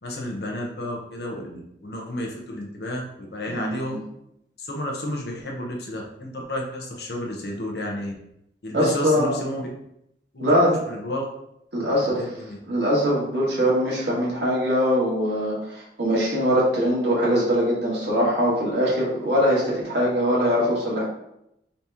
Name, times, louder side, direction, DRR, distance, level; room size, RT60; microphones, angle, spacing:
voice 1, 0.0-4.0 4.6-8.1 8.6-9.7 10.3-10.5 10.9-11.3 11.8-12.6, left 1 dB, 70° left, 0 dB, 0.8 m, -32 dB
voice 2, 3.5-4.0 8.7-9.4 10.4-10.8 11.7-12.2 12.7-21.0, equal, 75° right, -6 dB, 1.6 m, -22 dB
4.1 x 2.8 x 3.5 m, 0.80 s
head